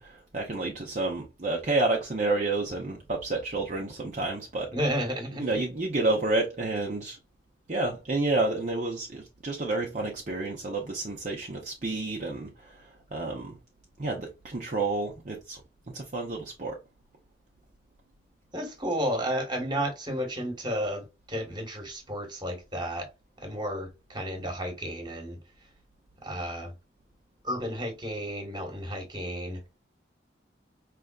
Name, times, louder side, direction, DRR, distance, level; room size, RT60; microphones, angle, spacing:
voice 1, 0.0-4.9 5.3-7.2 7.7-13.6 14.0-15.6 15.9-16.8, right 2 dB, 40° right, 0.7 m, -30 dB
voice 2, 4.7-5.6 18.5-23.1 23.4-25.4 26.2-26.7 27.4-29.6, equal, 20° right, 1.4 m, -32 dB
5.0 x 3.3 x 2.3 m
head